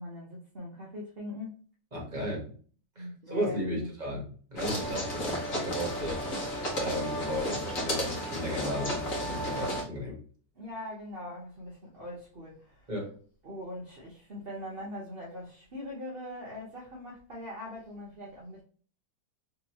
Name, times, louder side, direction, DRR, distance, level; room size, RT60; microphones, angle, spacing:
voice 1, 0.0-1.6 3.0-3.9 10.6-12.9 13.4-18.6, left 1 dB, 45° right, 0.8 m, -41 dB
voice 2, 1.9-2.4 2.9-4.2 4.5-6.2 6.7-10.2 12.9-13.1, equal, 30° right, 1.1 m, -35 dB
sound 1, 4.6-9.8, equal, 45° left, 1.5 m, -33 dB
3.5 x 3.0 x 2.9 m
omnidirectional pair, 2.1 m